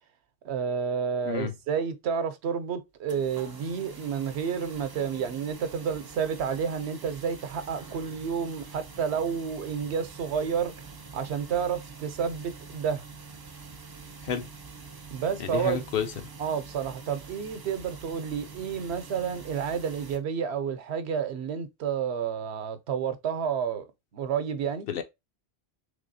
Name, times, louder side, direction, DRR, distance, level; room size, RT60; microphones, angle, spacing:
voice 1, 0.4-10.8 11.1-13.0 15.1-15.8 16.4-23.9 24.1-24.9, right 7 dB, 80° right, 0.9 m, -30 dB
sound 1, 3.1-20.2, right 4 dB, 35° right, 0.3 m, -45 dB
voice 2, 15.4-16.1 24.9-25.0, left 8 dB, 65° left, 0.7 m, -30 dB
3.4 x 3.3 x 2.6 m
omnidirectional pair, 1.1 m